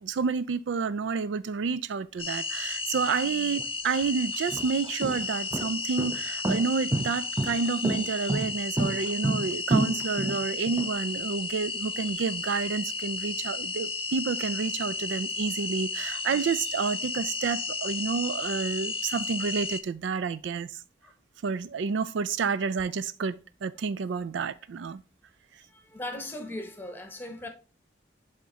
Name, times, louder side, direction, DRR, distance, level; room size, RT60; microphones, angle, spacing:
voice 1, 0.0-20.8 21.4-25.0, right 5 dB, 80° right, 0.4 m, -29 dB
sound 1, 2.2-19.8, left 3 dB, 30° left, 0.6 m, -33 dB
sound 2, 3.6-3.7 4.3-10.9, right 1 dB, 20° right, 0.5 m, -29 dB
voice 2, 25.7-27.5, left 1 dB, 10° left, 1.1 m, -38 dB
7.8 x 3.7 x 3.9 m
head